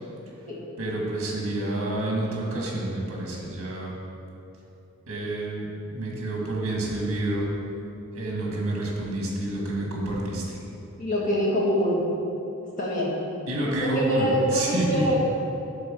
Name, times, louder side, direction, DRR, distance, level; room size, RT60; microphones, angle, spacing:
voice 1, 0.8-4.0 5.1-7.5 8.1-10.6 13.5-15.1, right 1 dB, 70° right, -2 dB, 1.6 m, -28 dB
voice 2, 11.0-12.0 12.8-13.1 13.7-15.2, equal, 35° left, -5 dB, 1.5 m, -25 dB
7.5 x 3.8 x 6.2 m, 2.8 s
head